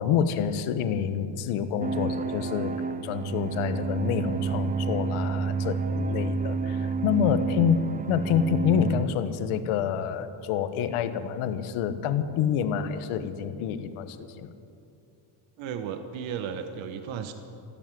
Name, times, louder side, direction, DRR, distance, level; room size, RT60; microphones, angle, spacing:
voice 1, 0.0-2.8 3.0-14.5, left 8 dB, 80° left, 11 dB, 1.2 m, -27 dB
sound 1, 1.8-9.1, right 5 dB, 20° right, 0.5 m, -30 dB
voice 2, 15.6-17.3, right 7 dB, 65° right, 7 dB, 1.2 m, -34 dB
14.5 x 13.0 x 7.6 m, 2.5 s
cardioid pair, 150°, 50 cm